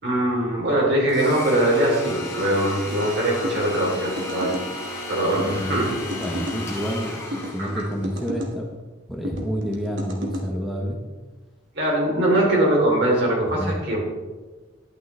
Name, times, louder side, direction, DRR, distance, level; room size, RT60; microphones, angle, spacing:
voice 1, 0.0-4.5 5.1-5.9 7.6-7.8 11.7-14.0, right 1 dB, 60° right, -3 dB, 3.3 m, -22 dB
Domestic sounds home sounds, 1.1-8.1, left 2 dB, 15° left, 3.0 m, -34 dB
sound 1, 3.4-4.7 5.4-6.6 7.3-8.5 9.2-10.5, right 1 dB, 75° right, 1.4 m, -33 dB
voice 2, 5.3-5.8 6.2-8.8 9.1-11.0 13.4-13.8, equal, ahead, -2 dB, 1.0 m, -29 dB
12.0 x 8.6 x 3.3 m, 1.3 s
head